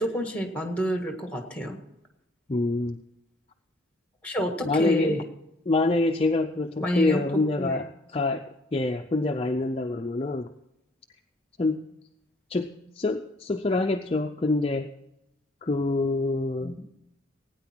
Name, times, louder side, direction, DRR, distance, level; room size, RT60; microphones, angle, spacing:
voice 1, 0.0-1.8 4.2-5.2 6.8-7.2 7.6-7.8 16.6-16.8, equal, 5° left, 4 dB, 1.7 m, -28 dB
voice 2, 2.5-3.0 4.6-5.2 5.7-7.8 8.1-8.4 8.7-10.5 11.6-11.8 12.5-14.9 15.6-16.8, left 2 dB, 30° left, 4 dB, 0.5 m, -26 dB
17.0 x 9.5 x 4.5 m, 0.86 s
head